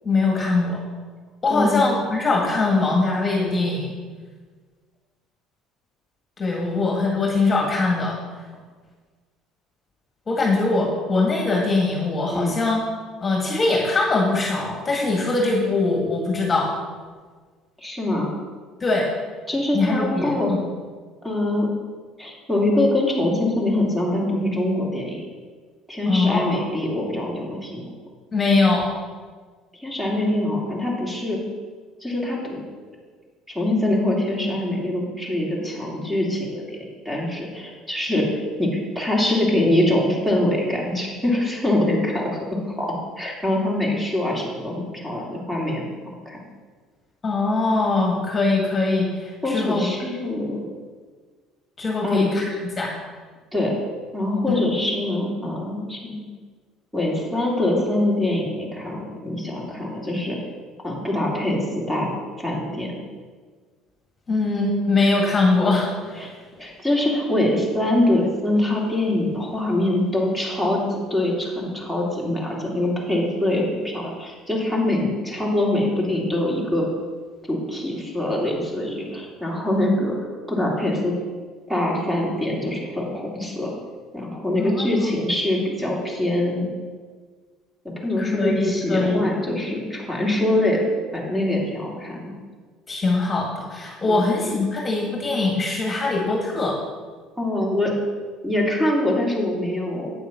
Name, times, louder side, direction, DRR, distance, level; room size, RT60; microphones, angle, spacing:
voice 1, 0.0-0.8 1.4-3.9 6.4-8.2 10.3-12.8 13.2-16.7 18.8-19.1 19.7-20.6 26.1-26.7 28.3-29.0 47.2-49.9 51.8-52.4 52.8-52.9 54.5-54.6 64.3-66.3 84.6-84.9 88.2-89.2 92.9-96.8, left 3 dB, 25° left, -1 dB, 1.9 m, -22 dB
voice 2, 17.8-18.3 19.5-20.5 21.2-21.7 22.2-25.3 25.9-27.9 29.8-31.4 32.0-32.6 33.5-42.9 43.2-45.9 46.2-46.4 49.4-50.6 52.0-52.2 53.5-53.7 54.1-56.2 56.9-60.4 60.8-62.1 62.4-63.0 66.2-66.3 66.6-76.9 77.5-80.2 80.5-81.2 81.7-83.7 84.1-86.7 87.8-90.8 91.1-92.4 94.0-94.3 97.4-97.9 98.4-100.1, left 1 dB, 5° right, -2 dB, 2.8 m, -24 dB
8.8 x 7.1 x 5.8 m, 1.5 s
supercardioid pair, 100°, 0 cm